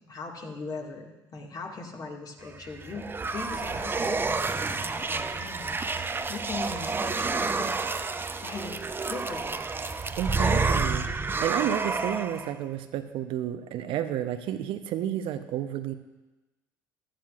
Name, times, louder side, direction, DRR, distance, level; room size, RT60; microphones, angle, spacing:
voice 1, 0.0-8.0 8.4-8.8 9.1-9.6, left 3 dB, 40° left, 1 dB, 1.9 m, -39 dB
sound 1, 2.5-12.5, right 4 dB, 20° right, 0.6 m, -29 dB
voice 2, 10.2-15.9, right 10 dB, 60° right, 9 dB, 0.7 m, -31 dB
15.0 x 11.5 x 2.5 m, 1.1 s
hypercardioid pair, 60°, 10 cm